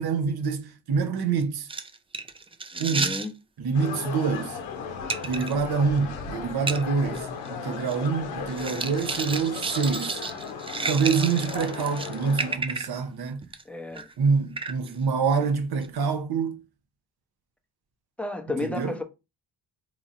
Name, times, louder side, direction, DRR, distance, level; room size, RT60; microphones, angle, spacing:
voice 1, 0.0-1.7 2.8-3.1 3.6-4.6 5.2-10.2 10.9-13.4 14.2-16.6 18.6-18.9, right 5 dB, 55° right, 0.9 m, -26 dB
sound 1, 1.7-3.3 5.1-5.5 6.0-6.1 6.7-6.8 7.1-7.2 7.5-8.1 8.5-13.0 13.4-13.6 13.9-14.1 14.6-14.9 15.8-15.9, right 4 dB, 15° right, 0.3 m, -32 dB
voice 2, 2.7-3.3 13.7-14.1 18.2-19.0, left 2 dB, 5° left, 0.7 m, -32 dB
sound 2, 3.7-12.6, left 6 dB, 90° left, 0.7 m, -36 dB
3.7 x 3.0 x 2.6 m
supercardioid pair, 65°, 45 cm